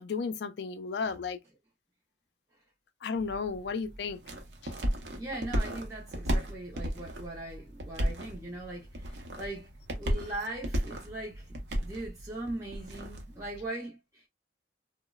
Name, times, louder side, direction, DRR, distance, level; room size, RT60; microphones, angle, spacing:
voice 1, 0.0-1.4 3.0-4.2, left 5 dB, 65° left, 0.4 m, -33 dB
sound 1, 3.1-13.7, equal, 65° right, 0.6 m, -35 dB
voice 2, 5.2-9.7 10.0-14.3, right 2 dB, 20° right, 0.5 m, -40 dB
2.9 x 2.0 x 2.2 m
head